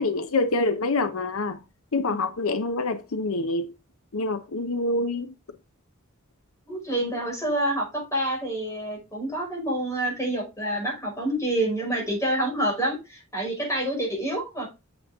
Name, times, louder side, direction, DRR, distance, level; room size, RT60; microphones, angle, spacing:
voice 1, 0.0-1.6 1.9-3.7 4.1-5.3, left 2 dB, 80° left, 0.8 m, -26 dB
voice 2, 6.7-14.7, right 1 dB, 15° left, 5.5 m, -27 dB
8.4 x 7.6 x 3.7 m
head